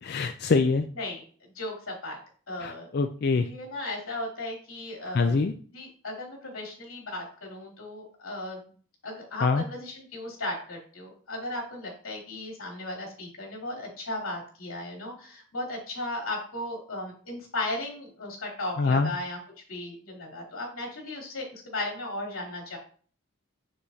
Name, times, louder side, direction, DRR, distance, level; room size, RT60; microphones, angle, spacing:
voice 1, 0.0-0.9 2.6-3.5 5.1-5.5 9.4-9.6 18.8-19.1, left 4 dB, 50° left, 7 dB, 0.4 m, -24 dB
voice 2, 1.5-2.2 2.5-2.9 3.4-5.4 5.7-8.6 9.0-19.4 19.7-22.8, left 1 dB, 85° left, -2 dB, 3.0 m, -36 dB
7.1 x 6.9 x 2.7 m, 0.43 s
head